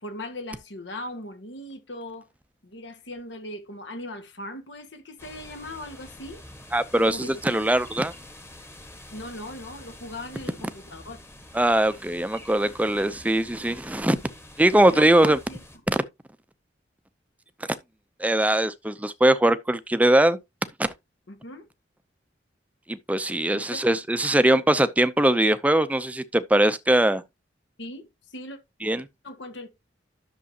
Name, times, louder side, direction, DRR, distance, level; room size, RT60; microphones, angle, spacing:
voice 1, 0.0-2.3 2.6-6.4 7.0-7.6 9.1-11.2 14.9-15.6 21.3-21.7 23.5-23.8 27.8-28.6 29.2-29.7, left 1 dB, 75° left, 1.7 m, -39 dB
sound 1, 5.2-15.8, left 1 dB, 15° left, 1.4 m, -47 dB
voice 2, 6.7-8.1 11.5-14.2 14.6-15.4 15.9-16.0 18.2-20.4 20.8-20.9 22.9-27.2 28.8-29.1, right 1 dB, 10° right, 0.6 m, -21 dB
11.0 x 6.8 x 2.8 m
head